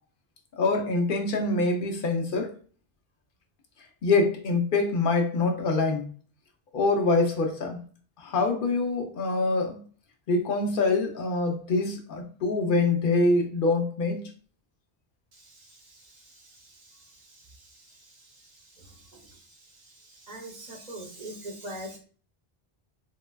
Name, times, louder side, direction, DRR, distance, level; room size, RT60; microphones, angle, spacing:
voice 1, 0.5-2.5 4.0-6.1 6.7-7.8 8.2-9.8 10.3-14.3, left 3 dB, 60° left, 0.8 m, -25 dB
voice 2, 20.3-22.0, right 1 dB, 45° right, 0.8 m, -39 dB
3.9 x 2.1 x 2.2 m
omnidirectional pair, 1.0 m